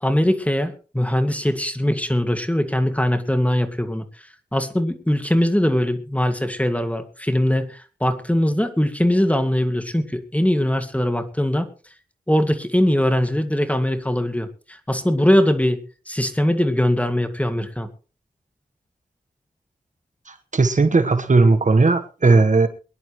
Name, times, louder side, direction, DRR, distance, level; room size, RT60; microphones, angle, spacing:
voice 1, 0.0-4.1 4.5-11.7 12.3-15.8 16.1-17.9, left 1 dB, 10° left, 9 dB, 2.0 m, -21 dB
voice 2, 20.3-22.7, right 3 dB, 50° right, 11 dB, 1.3 m, -17 dB
23.0 x 11.0 x 3.1 m, 0.34 s
wide cardioid pair, 65°, 16 cm